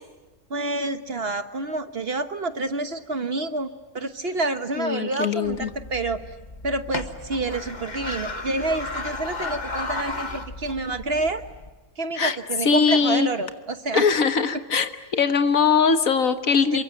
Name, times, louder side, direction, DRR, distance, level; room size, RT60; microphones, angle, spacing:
voice 1, 0.5-3.7 3.9-6.2 6.6-11.4 12.0-14.0 16.7-16.8, right 2 dB, 45° right, 9 dB, 1.4 m, -28 dB
voice 2, 4.8-5.7 12.2-12.4 12.6-13.3 13.9-16.8, left 5 dB, 70° left, 9 dB, 1.8 m, -21 dB
sound 1, 5.4-11.7, left 3 dB, 30° left, 1.7 m, -34 dB
28.0 x 23.5 x 9.0 m, 1.2 s
omnidirectional pair, 1.5 m